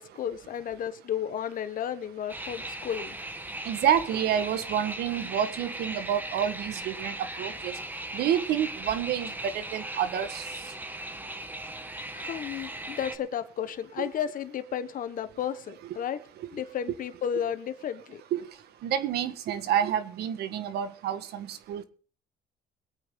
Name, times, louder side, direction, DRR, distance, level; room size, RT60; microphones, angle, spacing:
voice 1, 0.0-3.1 12.1-16.2 16.5-18.2, left 9 dB, 55° left, 10 dB, 1.5 m, -33 dB
sound 1, 2.3-13.2, right 1 dB, 10° right, 1.4 m, -38 dB
voice 2, 3.6-7.7 8.1-10.4 14.0-14.1 18.3-18.5 18.8-21.8, right 9 dB, 75° right, 11 dB, 1.6 m, -28 dB
22.5 x 8.8 x 3.9 m, 0.41 s
cardioid pair, 110°, 17 cm